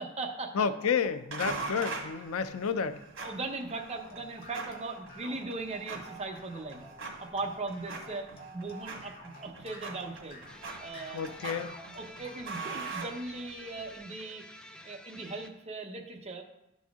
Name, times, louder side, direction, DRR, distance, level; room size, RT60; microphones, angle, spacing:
voice 1, 0.0-0.6 3.2-6.9 7.2-8.3 8.5-10.4 10.8-11.7 11.9-14.4 14.8-16.4, right 3 dB, 30° right, 3 dB, 0.8 m, -39 dB
voice 2, 0.5-3.0 11.1-11.7, left 6 dB, 90° left, 12 dB, 0.5 m, -30 dB
sound 1, 1.3-13.8, right 4 dB, 65° right, 1.7 m, -43 dB
sound 2, 3.7-13.0, equal, 50° left, 1.5 m, -51 dB
sound 3, 10.5-15.5, left 1 dB, 5° left, 0.4 m, -50 dB
12.0 x 4.2 x 3.6 m, 0.89 s
head